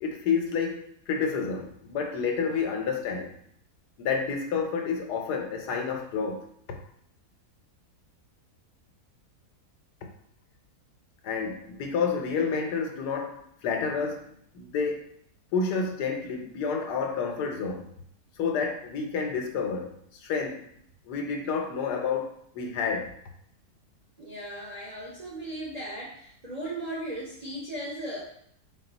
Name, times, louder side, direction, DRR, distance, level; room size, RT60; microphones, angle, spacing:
voice 1, 0.0-3.3 4.0-6.5 11.2-14.3 14.5-15.0 15.5-17.9 18.4-19.9 20.2-20.7 21.0-23.1, left 5 dB, 90° left, 3 dB, 1.3 m, -29 dB
voice 2, 24.2-28.2, right 1 dB, 45° right, -4 dB, 0.5 m, -37 dB
4.1 x 2.3 x 3.8 m, 0.67 s
omnidirectional pair, 1.7 m